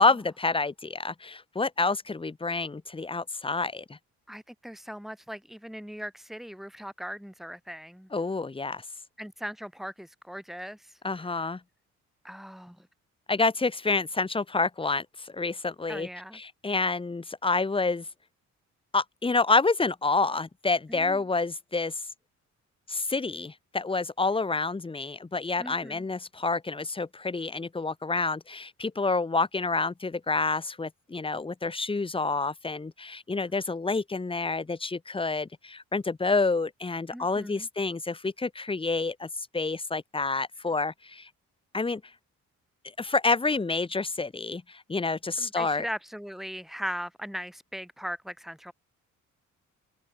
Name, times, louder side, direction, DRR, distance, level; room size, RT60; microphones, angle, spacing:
voice 1, 0.0-4.0 8.1-8.8 11.0-11.6 13.3-16.1 16.3-18.0 18.9-21.9 22.9-39.3 39.5-41.3 41.7-42.0 43.0-45.9, left 3 dB, 15° left, 1.2 m, -28 dB
voice 2, 4.3-8.1 9.2-10.9 12.2-12.9 15.9-16.4 20.9-21.2 25.6-26.0 37.1-37.7 45.4-48.7, equal, ahead, 6.2 m, -39 dB
open air
cardioid pair, 90°, 30 cm